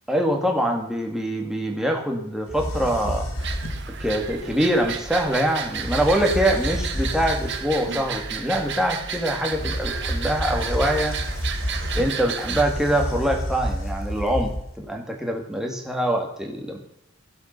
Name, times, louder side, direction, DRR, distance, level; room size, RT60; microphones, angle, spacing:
voice 1, 0.1-3.3 4.0-11.2 11.9-16.8, equal, ahead, 2 dB, 2.2 m, -24 dB
sound 1, 2.5-3.9 5.5-5.6 5.7-7.8 9.5-14.9, equal, 85° left, 2.8 m, -29 dB
sound 2, 3.4-12.6, right 6 dB, 55° right, 1.7 m, -32 dB
15.0 x 8.0 x 6.7 m, 0.77 s
head